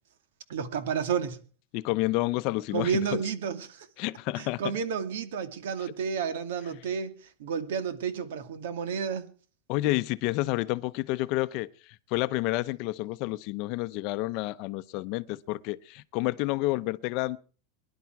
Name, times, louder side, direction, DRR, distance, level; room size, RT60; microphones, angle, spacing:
voice 1, 0.5-1.4 2.7-3.9 4.4-7.1 7.4-9.3, right 6 dB, 85° right, 2.4 m, -31 dB
voice 2, 1.7-3.2 4.0-4.7 9.7-11.7 12.1-17.4, left 19 dB, 40° left, 0.7 m, -29 dB
24.0 x 11.5 x 4.7 m
supercardioid pair, 175°, 0 cm